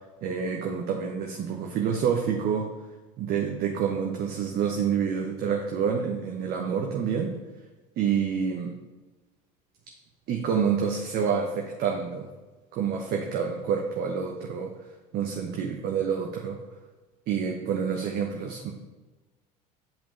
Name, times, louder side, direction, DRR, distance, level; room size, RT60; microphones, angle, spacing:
voice 1, 0.2-2.7 3.2-7.4 8.0-8.7 10.3-12.3 12.7-14.7 15.1-16.6 17.3-18.7, right 7 dB, 50° right, 1 dB, 0.8 m, -28 dB
7.6 x 5.3 x 3.2 m, 1.2 s
hypercardioid pair, 75°, 21 cm